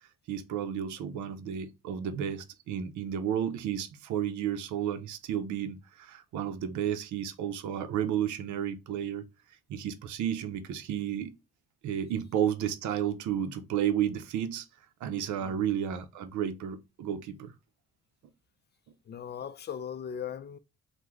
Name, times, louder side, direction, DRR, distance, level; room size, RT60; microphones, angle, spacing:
voice 1, 0.3-9.2 9.7-11.3 11.8-14.7 15.0-17.5, right 9 dB, 75° right, 0.5 m, -32 dB
voice 2, 19.1-20.6, left 8 dB, 35° left, 0.4 m, -38 dB
3.0 x 2.1 x 3.5 m
cardioid pair, 90°, 30 cm